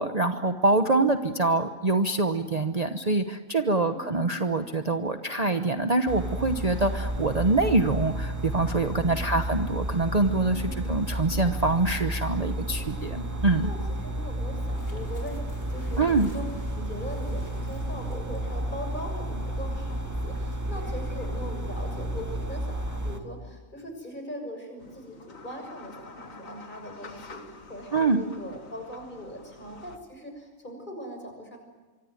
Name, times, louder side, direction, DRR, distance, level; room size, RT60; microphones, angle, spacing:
voice 1, 0.0-13.7 16.0-16.3 27.9-28.2, right 2 dB, 30° right, 7 dB, 1.1 m, -25 dB
voice 2, 3.8-4.4 9.0-9.5 10.6-11.0 12.8-13.2 13.6-16.4 16.7-31.6, equal, 35° left, 4 dB, 6.7 m, -40 dB
sound 1, 6.1-23.2, right 1 dB, 15° right, 2.1 m, -32 dB
sound 2, 14.6-18.6 18.9-19.0 19.8-20.6, left 1 dB, 65° left, 5.0 m, -52 dB
sound 3, 24.8-30.0, left 4 dB, 85° left, 2.2 m, -48 dB
25.0 x 25.0 x 9.3 m, 1.2 s
omnidirectional pair, 1.4 m